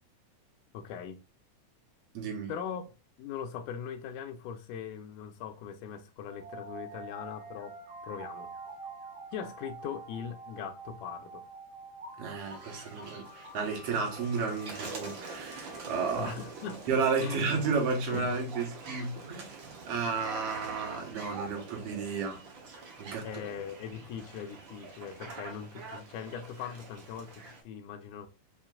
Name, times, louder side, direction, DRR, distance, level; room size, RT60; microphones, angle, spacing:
voice 1, 0.7-1.2 2.5-2.8 3.2-7.8 8.0-8.5 9.3-11.4 16.1-16.9 17.2-17.5 18.1-18.4 23.2-28.3, left 8 dB, 85° left, 2.1 m, -40 dB
voice 2, 2.1-2.5 12.2-16.3 16.9-22.4 23.0-23.3, right 5 dB, 60° right, 2.0 m, -32 dB
sound 1, 6.3-17.2, right 2 dB, 35° right, 1.4 m, -47 dB
sound 2, 12.3-27.6, right 3 dB, 75° right, 1.0 m, -45 dB
5.6 x 2.9 x 2.2 m
omnidirectional pair, 3.7 m